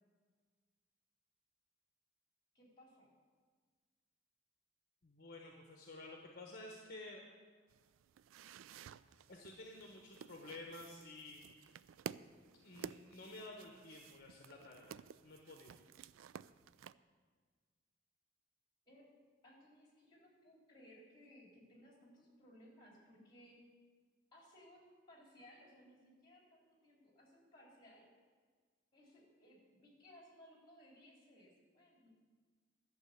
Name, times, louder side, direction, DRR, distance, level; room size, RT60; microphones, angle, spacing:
voice 1, 2.5-3.1 18.9-19.1 19.4-23.6 24.3-28.1 28.9-32.1, equal, 25° left, -2 dB, 3.5 m, -62 dB
voice 2, 5.0-7.2 9.3-11.4 12.6-15.8, left 2 dB, 50° left, 0 dB, 1.2 m, -52 dB
sound 1, 7.7-16.9, right 7 dB, 90° right, 0.3 m, -53 dB
12.0 x 6.8 x 8.2 m, 1.5 s
head